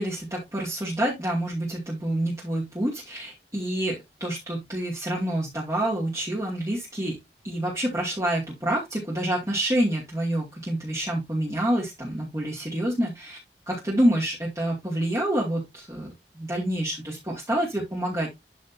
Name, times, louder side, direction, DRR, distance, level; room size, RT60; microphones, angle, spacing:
voice 1, 0.0-7.2 7.4-13.4 13.7-18.3, right 1 dB, 20° right, -6 dB, 2.5 m, -27 dB
12.5 x 4.2 x 2.8 m, 0.19 s
head